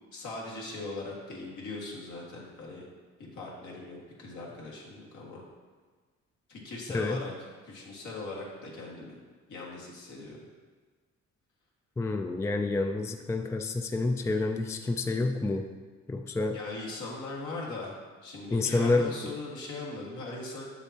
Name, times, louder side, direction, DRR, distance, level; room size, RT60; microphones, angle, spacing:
voice 1, 0.1-2.9 3.3-5.4 6.5-7.3 7.6-9.2 9.5-10.4 16.5-20.6, left 2 dB, 75° left, -4 dB, 1.9 m, -40 dB
voice 2, 12.0-15.7 16.1-16.6 18.5-19.3, left 3 dB, 10° left, 5 dB, 0.4 m, -28 dB
7.2 x 6.9 x 2.9 m, 1.4 s
cardioid pair, 90°, 30 cm